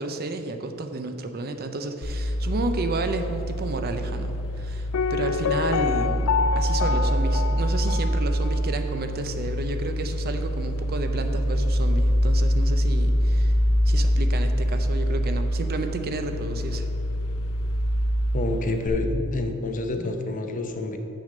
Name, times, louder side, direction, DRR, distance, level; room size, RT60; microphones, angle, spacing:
voice 1, 0.0-6.3 6.5-13.5 13.9-16.9, right 2 dB, 45° right, 7 dB, 0.6 m, -31 dB
sound 1, 2.0-18.9, equal, 90° left, 0.7 m, -25 dB
Piano, 4.9-8.7 9.0-9.1, left 6 dB, 70° left, 0.3 m, -27 dB
voice 2, 18.3-21.0, left 2 dB, 35° left, 5 dB, 0.7 m, -28 dB
6.7 x 6.4 x 6.4 m, 2.8 s
head